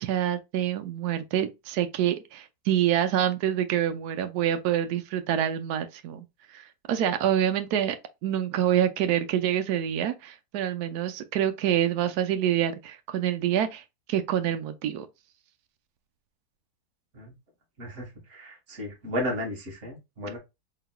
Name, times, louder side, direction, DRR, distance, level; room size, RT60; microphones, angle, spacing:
voice 1, 0.0-8.0 8.2-13.8 14.1-15.1, right 10 dB, 75° right, 1.1 m, -26 dB
voice 2, 17.8-20.4, equal, 50° right, 1.9 m, -34 dB
4.2 x 3.8 x 2.2 m
omnidirectional pair, 1.7 m